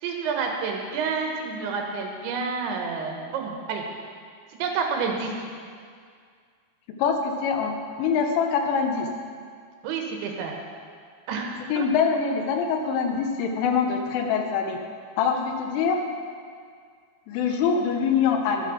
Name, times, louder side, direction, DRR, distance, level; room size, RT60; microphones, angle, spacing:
voice 1, 0.0-3.8 4.6-5.3 9.8-10.5 11.3-11.9, right 5 dB, 75° right, 2 dB, 3.3 m, -29 dB
voice 2, 7.0-9.1 11.7-14.8 15.2-16.0 17.3-18.7, left 6 dB, 80° left, 4 dB, 3.5 m, -24 dB
13.0 x 9.0 x 6.1 m, 2.1 s
omnidirectional pair, 5.6 m